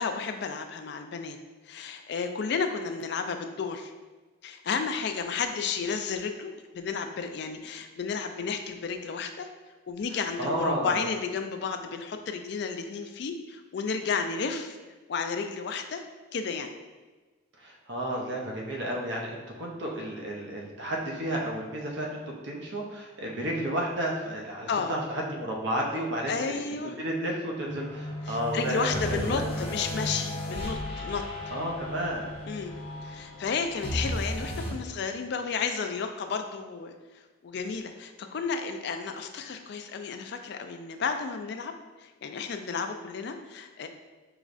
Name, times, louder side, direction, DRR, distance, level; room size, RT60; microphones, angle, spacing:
voice 1, 0.0-1.4 1.7-3.9 4.4-9.5 9.9-14.8 15.1-16.0 16.3-16.7 24.7-24.9 25.9-26.9 28.3-31.2 32.5-32.7 33.0-36.9 37.4-41.7 42.0-43.9, left 5 dB, 60° left, 6 dB, 0.3 m, -32 dB
voice 2, 10.1-11.0 17.6-26.6 26.8-29.5 31.5-32.3, right 1 dB, 65° right, -1 dB, 0.6 m, -32 dB
sound 1, 27.6-34.7, left 1 dB, 25° left, 1.1 m, -35 dB
4.9 x 3.1 x 2.5 m, 1.3 s
head